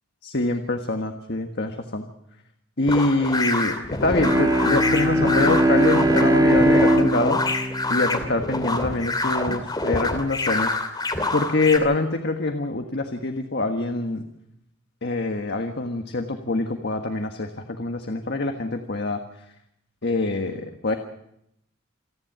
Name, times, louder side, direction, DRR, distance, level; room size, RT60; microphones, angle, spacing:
voice 1, 0.2-2.0 2.8-7.4 7.9-10.7 11.3-14.2 15.0-19.2 20.0-20.9, left 2 dB, 55° left, 4 dB, 1.6 m, -25 dB
sound 1, 2.9-11.8, left 2 dB, 20° left, 2.8 m, -26 dB
Bowed string instrument, 4.1-9.0, right 1 dB, 20° right, 2.7 m, -21 dB
28.5 x 11.0 x 8.9 m, 0.77 s
head